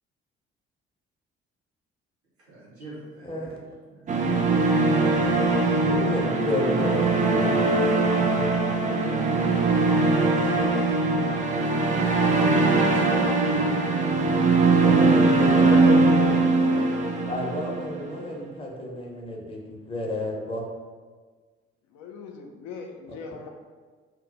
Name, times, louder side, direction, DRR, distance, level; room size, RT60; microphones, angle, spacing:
voice 1, 2.5-3.6 3.9-4.2 10.4-13.8, right 1 dB, 85° right, -7 dB, 0.8 m, -42 dB
voice 2, 3.3-3.6 5.6-7.4 14.7-15.8 17.2-19.6 19.9-20.6 23.1-23.2, left 1 dB, 15° left, -2 dB, 0.7 m, -31 dB
sound 1, 4.1-18.2, right 3 dB, 25° right, 0.4 m, -21 dB
voice 3, 15.6-16.9 21.9-23.5, left 5 dB, 60° left, 2 dB, 0.4 m, -35 dB
2.2 x 2.1 x 3.8 m, 1.5 s
figure-of-eight pair, 45°, 31 cm